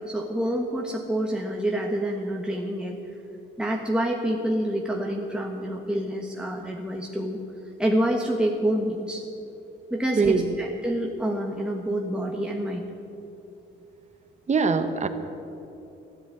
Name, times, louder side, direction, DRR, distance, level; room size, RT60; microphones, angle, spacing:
voice 1, 0.0-3.0 3.6-7.4 7.8-9.2 9.9-12.9, right 1 dB, 5° right, 0 dB, 1.3 m, -27 dB
voice 2, 14.5-15.1, right 5 dB, 35° right, 8 dB, 1.2 m, -22 dB
13.0 x 10.5 x 8.9 m, 2.9 s
cardioid pair, 90°, 20 cm